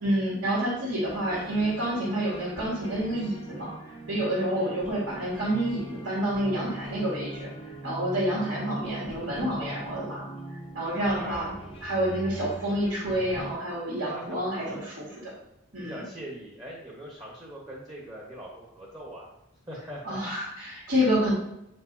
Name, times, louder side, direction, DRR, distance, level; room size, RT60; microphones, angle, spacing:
voice 1, 0.0-10.3 10.7-11.5 11.8-15.1 15.7-16.0 20.0-21.3, equal, 80° right, -7 dB, 2.6 m, -28 dB
sound 1, 1.0-13.6, right 1 dB, 25° left, 0.8 m, -42 dB
voice 2, 4.4-4.7 11.2-11.5 14.0-14.8 15.8-19.3 19.7-20.2, equal, 20° right, -4 dB, 1.2 m, -42 dB
8.7 x 5.2 x 2.8 m, 0.83 s
head